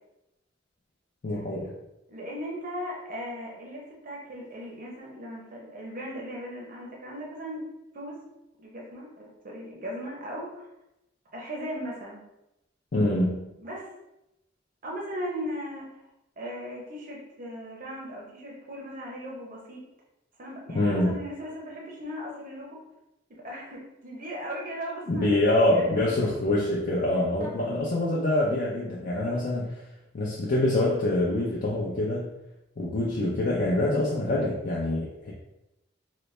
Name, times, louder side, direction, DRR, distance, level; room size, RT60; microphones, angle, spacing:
voice 1, 1.2-1.7 12.9-13.5 20.7-21.2 25.1-29.7 30.1-32.3 32.8-35.3, left 1 dB, 50° left, -4 dB, 0.5 m, -25 dB
voice 2, 2.1-7.6 7.9-8.2 8.6-10.7 11.3-12.3 13.6-13.9 14.8-16.0 16.4-19.8 20.4-22.8 23.3-25.3 25.6-26.2 27.4-27.5 29.2-29.4, equal, 45° right, -3 dB, 0.7 m, -38 dB
3.9 x 2.0 x 3.2 m, 0.90 s
head